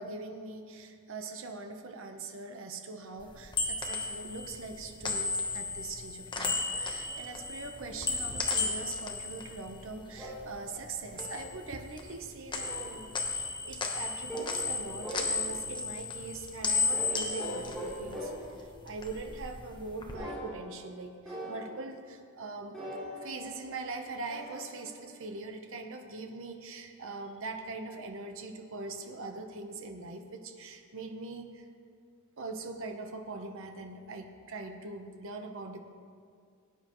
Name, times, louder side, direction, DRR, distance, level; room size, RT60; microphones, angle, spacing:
voice 1, 0.0-22.8 23.1-31.6 32.4-35.8, right 3 dB, 65° right, 4 dB, 0.9 m, -42 dB
sound 1, 3.2-10.5 10.8-12.2 12.5-18.5 18.8-20.1, left 4 dB, 20° left, 1.0 m, -34 dB
sound 2, 6.7-8.9 10.1-11.6 12.6-13.1 14.3-14.7 15.0-15.7 16.9-18.6 20.1-20.9 21.2-21.9 22.7-25.4, right 1 dB, ahead, 3.2 m, -42 dB
18.5 x 9.4 x 3.1 m, 2.2 s
head